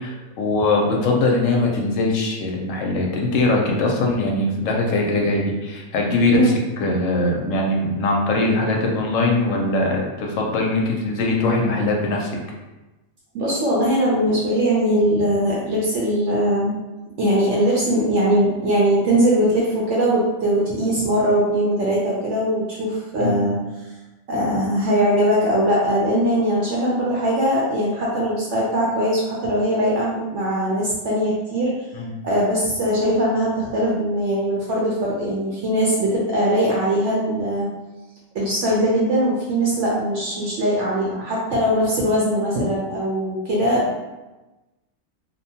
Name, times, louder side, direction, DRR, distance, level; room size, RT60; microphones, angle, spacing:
voice 1, 0.0-6.5 6.8-12.3 23.2-23.4 32.0-32.1, left 2 dB, 70° left, 0 dB, 0.9 m, -21 dB
voice 2, 13.3-16.7 17.2-23.6 24.3-31.7 32.2-37.7 38.3-44.0, equal, 65° right, -5 dB, 0.8 m, -21 dB
2.7 x 2.1 x 2.7 m, 1.1 s
omnidirectional pair, 1.4 m